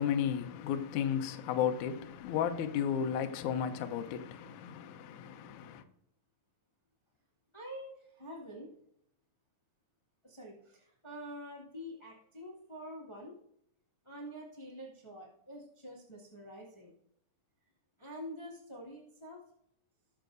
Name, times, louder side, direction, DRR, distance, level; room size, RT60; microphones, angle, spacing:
voice 1, 0.0-5.8, left 8 dB, 75° left, 1.9 m, -33 dB
voice 2, 7.5-8.7 10.2-13.3 14.0-16.9 18.0-19.4, equal, 35° left, 0.4 m, -46 dB
20.0 x 6.6 x 2.6 m
omnidirectional pair, 4.2 m